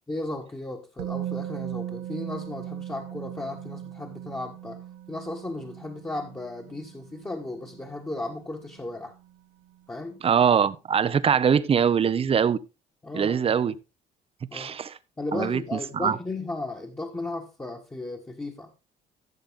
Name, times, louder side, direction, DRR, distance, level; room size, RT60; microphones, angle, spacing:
voice 1, 0.1-9.1 9.9-10.2 13.0-13.6 14.5-14.7 15.2-18.7, left 2 dB, 15° left, 1.6 m, -35 dB
Musical instrument, 1.0-8.9 9.2-9.3, right 12 dB, 85° right, 1.0 m, -39 dB
voice 2, 10.2-12.6 13.1-13.7 14.5-15.0 15.3-15.6 15.9-16.2, right 7 dB, 35° right, 0.8 m, -22 dB
14.5 x 6.8 x 3.7 m
cardioid pair, 110°, 17 cm